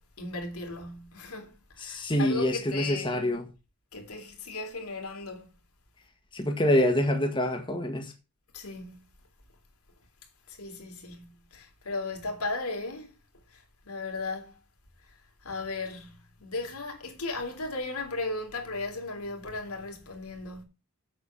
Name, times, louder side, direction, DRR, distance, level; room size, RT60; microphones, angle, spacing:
voice 1, 0.2-3.4 3.9-5.5 8.5-9.0 10.5-13.1 13.5-13.6 13.9-14.5 15.4-20.6, left 3 dB, 90° left, 3.5 m, -36 dB
voice 2, 1.8-3.4 6.3-8.1, left 1 dB, 20° left, 1.7 m, -26 dB
7.9 x 7.6 x 7.6 m
head